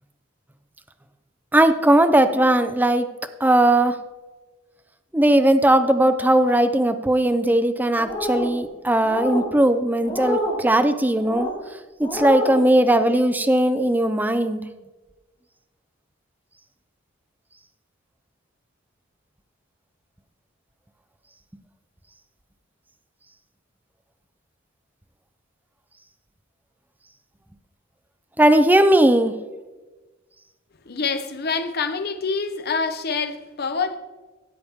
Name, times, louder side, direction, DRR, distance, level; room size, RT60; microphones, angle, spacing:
voice 1, 1.5-3.1 3.4-3.9 5.1-11.5 12.0-14.6 28.4-29.3, right 1 dB, 10° right, 0.5 m, -18 dB
sound 1, 8.0-8.5 9.0-9.5 10.0-10.6 11.2-11.5 12.0-12.6, left 1 dB, 25° left, 3.8 m, -27 dB
voice 2, 30.9-34.0, left 4 dB, 55° left, 0.8 m, -26 dB
13.5 x 8.4 x 3.6 m
head